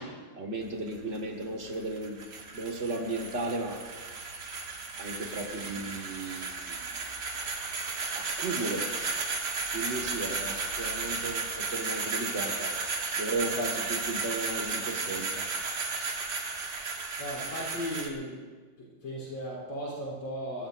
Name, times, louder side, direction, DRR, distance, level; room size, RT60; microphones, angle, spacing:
voice 1, 0.4-3.8 5.0-6.9 8.1-8.9 9.7-12.7 13.2-15.4 16.0-16.2, right 2 dB, 35° right, 1 dB, 1.9 m, -35 dB
sound 1, 0.6-18.1, right 4 dB, 55° right, 2.0 m, -34 dB
voice 2, 17.2-18.4 19.0-20.7, equal, 85° left, -6 dB, 4.3 m, -36 dB
22.5 x 16.0 x 2.6 m, 1.4 s
omnidirectional pair, 2.3 m